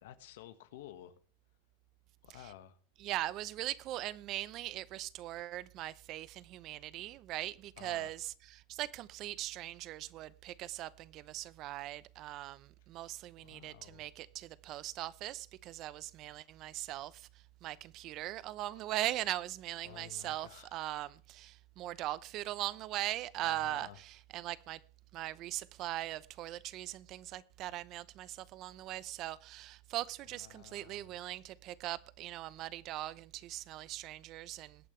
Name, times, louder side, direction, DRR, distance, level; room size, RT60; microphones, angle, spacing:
voice 1, 0.0-1.1 2.2-2.8 7.8-8.1 13.4-14.1 19.8-21.0 23.4-24.0 30.3-31.2, left 13 dB, 70° left, 1.6 m, -52 dB
voice 2, 3.0-24.8 25.1-34.9, right 15 dB, 45° right, 0.8 m, -40 dB
22.0 x 8.8 x 3.3 m
hypercardioid pair, 115°, 0 cm